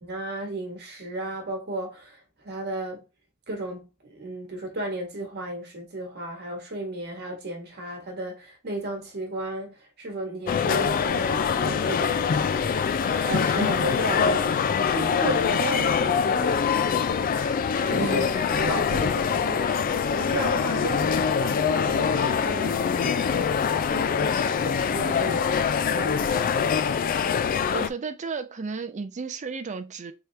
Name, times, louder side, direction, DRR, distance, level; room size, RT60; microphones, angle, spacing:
voice 1, 0.0-3.0 3.5-12.4 13.1-16.6 17.9-21.1 21.4-23.3 23.9-26.7, right 1 dB, 50° right, 1.4 m, -34 dB
sound 1, 10.5-27.9, left 6 dB, 40° left, 0.3 m, -24 dB
voice 2, 27.7-30.1, right 4 dB, 35° right, 0.5 m, -33 dB
3.6 x 2.9 x 3.2 m
head